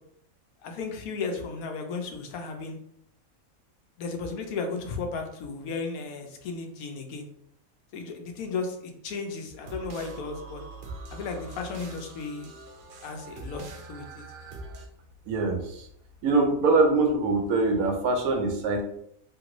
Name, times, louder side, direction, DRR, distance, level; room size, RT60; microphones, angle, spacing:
voice 1, 0.6-2.8 4.0-7.3 7.9-10.6 11.1-12.5 13.0-14.2, left 4 dB, 85° left, 4 dB, 1.1 m, -34 dB
sound 1, 9.6-14.9, right 2 dB, 60° right, 0.5 m, -43 dB
voice 2, 15.3-15.9 16.2-18.8, right 3 dB, 85° right, 4 dB, 1.1 m, -23 dB
3.0 x 2.5 x 2.9 m, 0.72 s
omnidirectional pair, 1.5 m